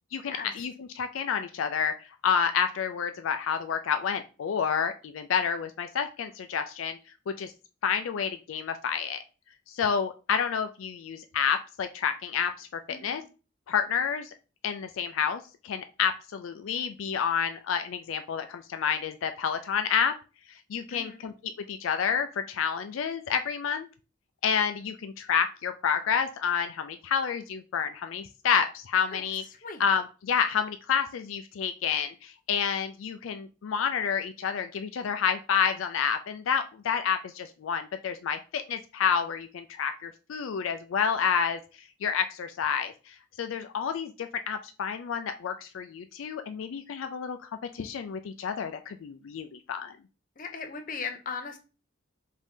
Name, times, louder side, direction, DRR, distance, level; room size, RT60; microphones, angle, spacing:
voice 1, 0.1-1.9 2.2-7.0 7.3-7.5 7.8-9.2 9.7-13.2 13.7-14.3 14.6-20.1 20.7-21.3 21.7-23.9 24.4-29.4 29.8-41.6 42.0-47.4 47.7-50.0, left 7 dB, 80° left, 0.4 m, -29 dB
voice 2, 12.9-13.3 20.9-21.2 29.1-29.2 29.6-29.8 50.4-51.6, left 5 dB, 40° left, 0.7 m, -38 dB
5.0 x 2.7 x 3.6 m
head